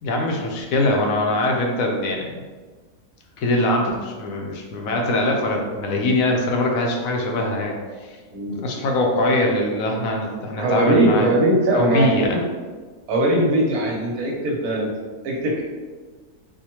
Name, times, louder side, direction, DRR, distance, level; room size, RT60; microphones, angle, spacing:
voice 1, 0.0-2.3 3.4-7.7 8.1-8.2 8.6-11.3 11.7-12.4, left 1 dB, 70° left, 0 dB, 0.9 m, -22 dB
voice 2, 8.3-8.7 10.6-12.4 13.1-14.9 15.2-15.6, right 1 dB, 70° right, -2 dB, 1.2 m, -20 dB
4.7 x 2.2 x 2.8 m, 1.4 s
omnidirectional pair, 1.7 m